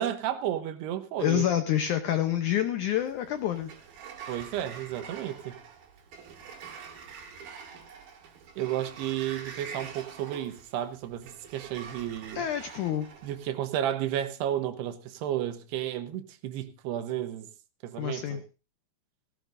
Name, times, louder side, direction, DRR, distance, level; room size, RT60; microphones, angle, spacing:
voice 1, 0.0-1.5 4.3-5.6 8.6-12.5 13.2-17.5 17.8-18.4, right 11 dB, 80° right, 3.1 m, -32 dB
voice 2, 1.2-3.7 12.4-13.1 18.0-18.4, left 11 dB, 90° left, 1.7 m, -27 dB
Sliding door, 2.9-13.5, right 6 dB, 65° right, 3.8 m, -46 dB
17.0 x 16.0 x 2.6 m
omnidirectional pair, 4.7 m